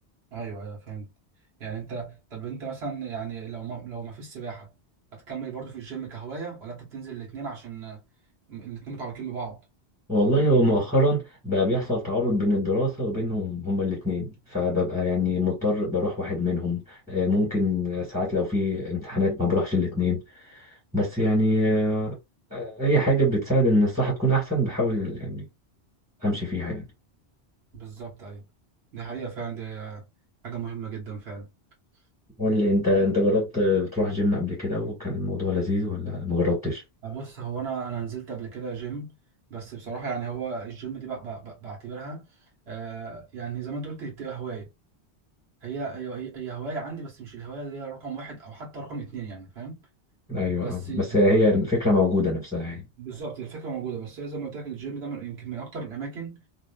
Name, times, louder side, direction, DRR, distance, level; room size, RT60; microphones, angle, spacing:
voice 1, 0.3-1.1 1.6-4.7 5.1-8.0 8.5-9.6 27.7-28.5 28.9-30.1 30.4-31.5 33.0-33.2 37.0-39.1 39.5-42.3 42.7-44.7 45.6-49.8 50.6-51.2 51.5-51.6 53.0-56.4, right 5 dB, 70° right, 1.4 m, -35 dB
voice 2, 10.1-20.2 20.5-20.6 20.9-22.1 22.5-25.4 26.2-26.8 32.4-36.8 50.3-52.8, left 1 dB, 5° right, 1.4 m, -24 dB
2.6 x 2.5 x 2.3 m
omnidirectional pair, 1.1 m